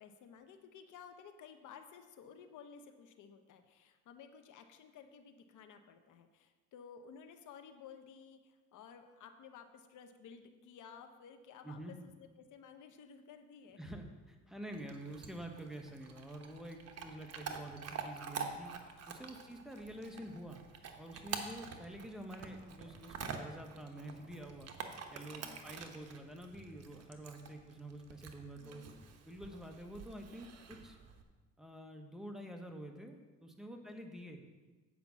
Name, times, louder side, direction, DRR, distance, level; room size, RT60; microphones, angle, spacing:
voice 1, 0.0-13.8 14.6-14.7 19.2-19.6 25.4-25.6 28.6-29.2 33.7-34.0, left 7 dB, 80° left, 7 dB, 0.9 m, -55 dB
voice 2, 11.6-11.9 13.8-18.7 19.1-20.6 21.0-24.7 25.1-28.8 29.3-31.0 31.6-34.4, right 1 dB, ahead, 3 dB, 1.2 m, -48 dB
Chewing mastication / Dog, 14.7-31.2, right 5 dB, 55° right, 1.1 m, -47 dB
8.6 x 5.1 x 7.3 m, 1.3 s
cardioid pair, 90°, 30 cm